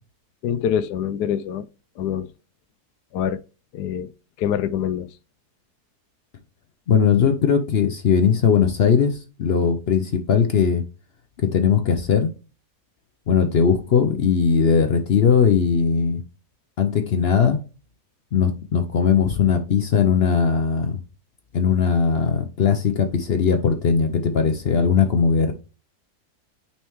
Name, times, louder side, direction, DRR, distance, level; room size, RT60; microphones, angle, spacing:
voice 1, 0.4-1.6 2.0-2.3 3.1-3.4 3.7-4.1 4.4-5.1, left 9 dB, 85° left, 1.2 m, -25 dB
voice 2, 6.9-10.8 11.4-12.3 13.3-16.2 16.8-17.6 18.3-21.0 21.5-25.5, left 6 dB, 60° left, 0.6 m, -19 dB
8.9 x 4.3 x 3.0 m
omnidirectional pair, 1.7 m